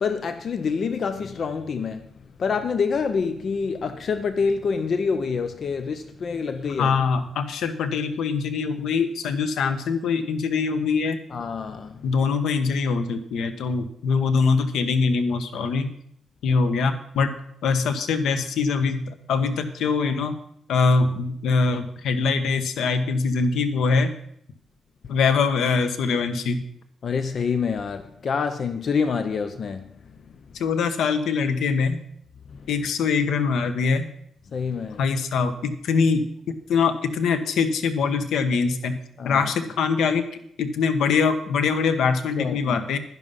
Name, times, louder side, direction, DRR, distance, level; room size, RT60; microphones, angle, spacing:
voice 1, 0.0-2.1 2.4-6.9 11.3-12.1 27.0-29.9 32.5-32.7 34.5-35.0 39.2-39.5 42.4-42.8, left 5 dB, 45° left, 0.7 m, -27 dB
voice 2, 6.8-11.2 12.0-15.9 16.4-17.4 17.6-20.3 20.7-24.1 25.1-26.6 30.6-32.0 32.7-34.1 35.0-39.0 39.2-40.2 40.6-43.0, left 5 dB, 90° left, 1.2 m, -23 dB
11.0 x 11.0 x 5.6 m
wide cardioid pair, 145°, 0 cm